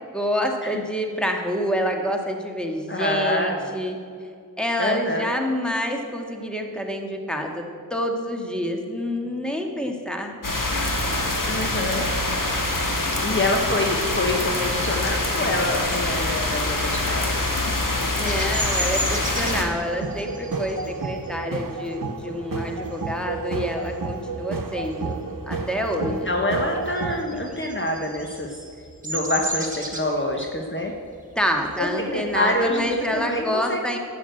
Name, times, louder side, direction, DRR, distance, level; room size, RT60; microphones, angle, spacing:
voice 1, 0.1-4.0 4.6-7.6 7.9-10.3 18.2-25.2 25.5-26.3 31.4-34.0, equal, ahead, 2 dB, 2.0 m, -27 dB
voice 2, 2.9-3.8 4.8-5.3 11.5-12.1 13.2-17.3 17.6-17.7 26.0-28.5 29.0-30.9 31.8-33.8, left 1 dB, 35° left, 1 dB, 1.3 m, -26 dB
sound 1, 10.4-19.6, left 2 dB, 65° left, 1.9 m, -25 dB
Bird vocalization bird call bird song, 18.3-23.5 23.9-24.2 24.5-25.8 26.0-33.4, right 1 dB, 20° right, 2.1 m, -34 dB
sound 2, 19.9-27.2, right 4 dB, 70° right, 1.1 m, -31 dB
11.5 x 8.6 x 7.9 m, 2.4 s
wide cardioid pair, 45°, 35 cm